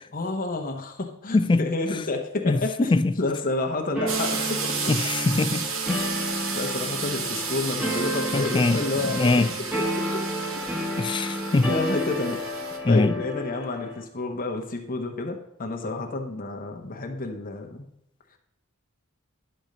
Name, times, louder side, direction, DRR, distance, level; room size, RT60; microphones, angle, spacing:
voice 1, 0.1-5.0 6.5-9.5 11.7-12.4 12.9-17.8, left 2 dB, 40° left, 3 dB, 1.0 m, -29 dB
sound 1, 3.9-14.0, equal, 5° right, 1.3 m, -31 dB
sound 2, 4.1-12.8, right 5 dB, 65° right, 1.2 m, -32 dB
voice 2, 4.9-6.0 8.3-8.8 9.1-9.5 11.0-11.7 12.8-13.1, left 3 dB, 25° left, 13 dB, 0.3 m, -22 dB
10.5 x 4.4 x 6.5 m, 0.79 s
head